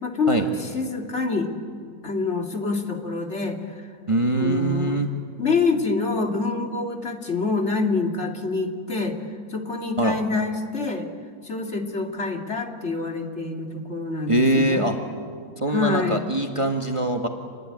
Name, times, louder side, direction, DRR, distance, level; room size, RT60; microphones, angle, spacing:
voice 1, 0.0-1.5 2.0-3.9 4.4-5.0 5.4-9.2 9.5-11.1 11.4-14.9 15.7-16.2, left 3 dB, 45° left, 3 dB, 2.5 m, -26 dB
voice 2, 4.1-5.1 10.0-10.2 14.3-14.9 15.6-17.3, right 1 dB, 20° right, 3 dB, 1.6 m, -22 dB
28.0 x 21.0 x 9.8 m, 2.1 s
omnidirectional pair, 1.7 m